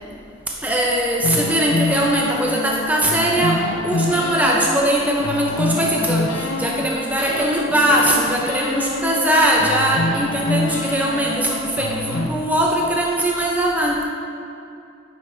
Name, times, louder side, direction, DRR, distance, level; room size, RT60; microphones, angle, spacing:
voice 1, 0.6-14.0, right 1 dB, 10° right, -2 dB, 0.5 m, -20 dB
sound 1, 1.2-6.9 7.2-9.3 9.6-12.3, left 2 dB, 75° left, 0.7 m, -26 dB
9.0 x 5.2 x 3.3 m, 2.6 s
head